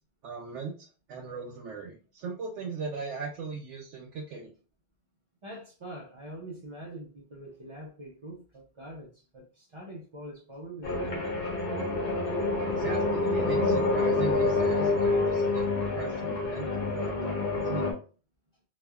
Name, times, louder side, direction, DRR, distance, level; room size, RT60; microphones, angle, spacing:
voice 1, 0.2-4.5 12.7-15.7 15.9-16.7 16.9-17.9, right 5 dB, 90° right, -1 dB, 0.9 m, -38 dB
voice 2, 5.4-11.5, right 1 dB, 50° right, -2 dB, 0.3 m, -44 dB
sound 1, 10.8-17.9, left 3 dB, 55° left, 0.9 m, -27 dB
2.9 x 2.3 x 2.2 m, 0.36 s
omnidirectional pair, 1.2 m